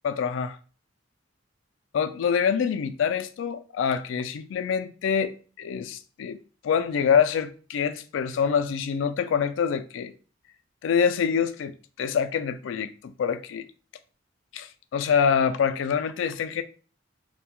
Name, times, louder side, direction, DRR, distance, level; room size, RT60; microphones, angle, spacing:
voice 1, 0.0-0.6 1.9-6.4 6.6-10.1 10.8-11.7 12.0-13.6 14.5-16.6, left 7 dB, 75° left, 0.3 m, -25 dB
2.3 x 2.1 x 2.8 m
head